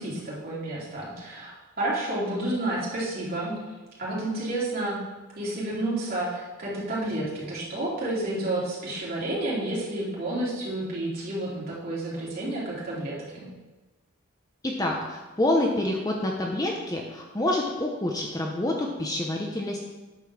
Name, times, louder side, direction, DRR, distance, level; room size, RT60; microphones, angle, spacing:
voice 1, 0.0-3.6 4.0-5.0 5.3-13.5, right 1 dB, 45° right, -7 dB, 3.3 m, -30 dB
voice 2, 14.6-19.8, left 1 dB, 15° left, 0 dB, 0.8 m, -27 dB
9.2 x 5.4 x 6.3 m, 1.2 s
head